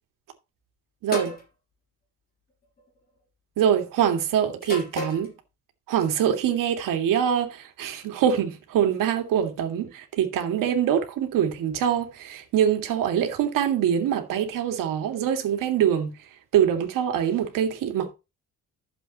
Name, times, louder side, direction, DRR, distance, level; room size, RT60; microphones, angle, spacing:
voice 1, 1.0-1.4 3.6-5.3 5.9-9.9 10.2-16.1 16.5-18.1, right 9 dB, 90° right, 2.2 m, -24 dB
sound 1, 1.1-1.4 2.6-3.0 4.6-5.3, left 2 dB, 30° left, 3.6 m, -32 dB
12.0 x 7.3 x 3.0 m
cardioid pair, 175°, 32 cm